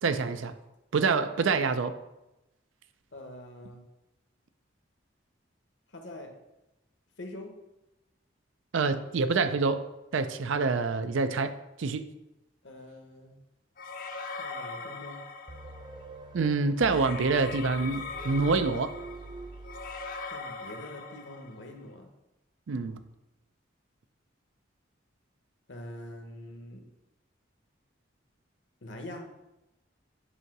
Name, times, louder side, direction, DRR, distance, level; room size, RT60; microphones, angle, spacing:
voice 1, 0.0-0.5 0.9-2.0 8.7-9.9 10.1-12.1 16.3-18.9 22.7-23.0, right 4 dB, 80° right, 11 dB, 0.5 m, -26 dB
voice 2, 3.1-3.8 5.9-6.4 7.2-7.5 12.6-13.4 14.4-15.2 20.3-22.1 25.7-26.8 28.8-29.2, left 1 dB, 70° left, 4 dB, 1.0 m, -44 dB
sound 1, 13.8-16.0 16.8-21.7, left 4 dB, 45° left, 0.6 m, -41 dB
sound 2, 15.5-20.5, right 2 dB, 25° right, 0.3 m, -44 dB
8.2 x 2.8 x 5.9 m, 0.96 s
head